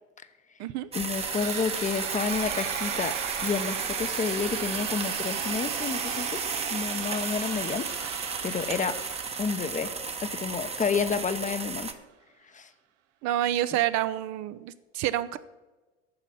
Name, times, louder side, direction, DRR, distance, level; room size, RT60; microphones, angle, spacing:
voice 1, 0.9-3.1 3.4-6.4 6.7-9.0 9.4-9.9 10.2-11.9 12.5-12.7, left 5 dB, 20° left, 11 dB, 0.8 m, -30 dB
sound 1, 0.9-11.9, right 4 dB, 15° right, 0.9 m, -33 dB
sound 2, 1.1-11.1, right 10 dB, 80° right, 0.8 m, -38 dB
voice 2, 13.2-15.4, right 13 dB, 50° right, 13 dB, 0.6 m, -28 dB
9.5 x 6.2 x 7.7 m, 1.2 s
hypercardioid pair, 80°, 36 cm